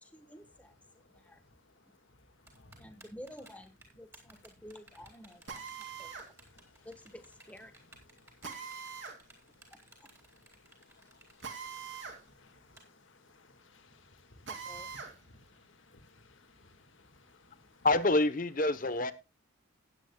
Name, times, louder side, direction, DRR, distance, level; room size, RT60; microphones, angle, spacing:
voice 1, 0.0-1.4 2.8-6.2 6.8-7.7 8.4-8.7 10.0-10.1 14.6-15.0, equal, 5° left, 1.3 m, -51 dB
voice 2, 2.5-2.9 6.2-6.3 6.5-6.9 8.2-8.4 9.0-9.7 10.6-14.5 15.0-17.9, left 2 dB, 70° left, 1.9 m, -61 dB
Typing, 2.5-12.8, right 2 dB, 15° right, 3.7 m, -58 dB
Drill, 5.5-6.3 8.4-9.2 11.4-12.2 12.6-12.7 14.5-15.1, right 6 dB, 60° right, 2.6 m, -42 dB
voice 3, 17.8-19.1, left 2 dB, 40° left, 0.9 m, -27 dB
19.0 x 9.1 x 2.3 m
head